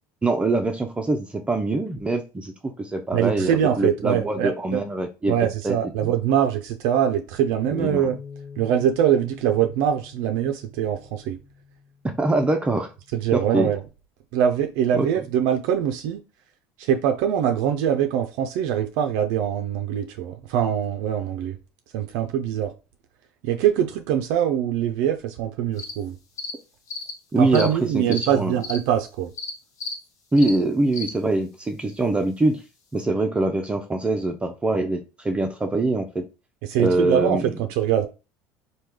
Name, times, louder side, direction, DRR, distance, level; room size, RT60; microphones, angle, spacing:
voice 1, 0.2-5.4 5.6-5.8 6.0-6.1 7.8-8.1 12.2-12.9 13.3-13.7 15.0-15.1 27.3-28.5 30.3-32.6 32.9-36.3 36.8-37.5, right 2 dB, 15° right, 0.5 m, -23 dB
voice 2, 3.1-4.8 5.3-8.2 8.6-11.4 13.1-13.8 14.3-16.2 16.8-21.6 21.9-22.7 23.4-26.2 27.4-29.3 36.6-38.1, right 9 dB, 75° right, 0.4 m, -23 dB
Bass guitar, 7.6-12.1 12.7-13.9, left 7 dB, 80° left, 0.6 m, -43 dB
sound 1, 25.8-25.9 26.4-26.5 26.9-27.1 27.5-27.7 28.1-28.3 28.6-28.8 29.4-29.5 29.8-29.9 30.4-30.6 30.9-31.1, left 3 dB, 50° left, 0.9 m, -32 dB
3.1 x 2.2 x 3.5 m
supercardioid pair, 95°, 7 cm